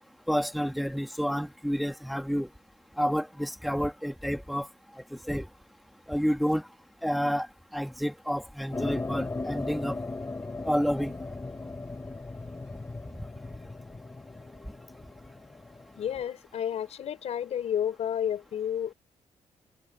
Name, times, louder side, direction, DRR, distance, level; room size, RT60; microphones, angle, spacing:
voice 1, 0.3-2.5 3.0-4.7 5.1-5.5 6.1-6.7 7.0-7.5 7.7-10.0 10.7-11.1, equal, ahead, 2.2 m, -29 dB
sound 1, 8.7-16.2, left 3 dB, 25° left, 4.2 m, -37 dB
voice 2, 16.0-18.9, left 9 dB, 70° left, 5.1 m, -31 dB
cardioid pair, 85°, 11 cm